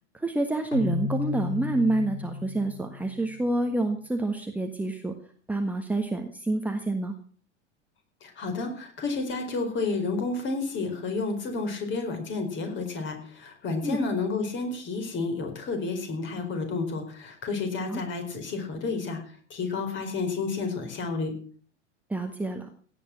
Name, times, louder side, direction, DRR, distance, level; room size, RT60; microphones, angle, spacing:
voice 1, 0.1-5.1 5.5-7.1 13.8-14.0 17.9-18.0 22.1-22.7, right 2 dB, 5° right, 3 dB, 1.4 m, -28 dB
Keyboard (musical), 0.7-3.6, left 4 dB, 50° left, 3.6 m, -34 dB
voice 2, 8.2-21.3, left 3 dB, 30° left, 5 dB, 4.8 m, -31 dB
17.0 x 9.2 x 5.9 m, 0.44 s
figure-of-eight pair, 90°, 36 cm